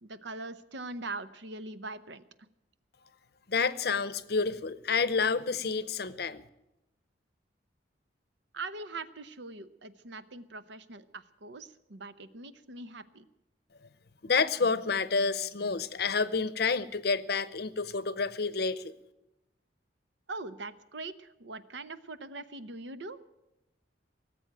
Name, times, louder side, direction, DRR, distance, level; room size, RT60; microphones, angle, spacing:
voice 1, 0.0-2.2 8.5-13.2 20.3-23.2, right 3 dB, 70° right, 13 dB, 0.8 m, -42 dB
voice 2, 3.5-6.4 14.2-18.9, left 4 dB, 55° left, 16 dB, 0.7 m, -29 dB
18.5 x 7.9 x 9.0 m, 0.93 s
head